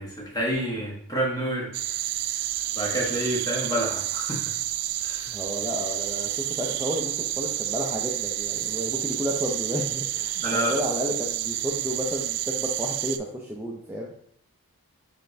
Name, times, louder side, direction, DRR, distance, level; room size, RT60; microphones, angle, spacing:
voice 1, 0.0-1.7 2.7-4.5 5.0-5.3 10.4-10.7, equal, 15° left, -3 dB, 1.1 m, -28 dB
sound 1, 1.7-13.2, right 14 dB, 85° right, 0.3 m, -30 dB
voice 2, 5.3-14.1, equal, 10° right, -3 dB, 0.4 m, -31 dB
5.0 x 3.3 x 2.6 m, 0.66 s
head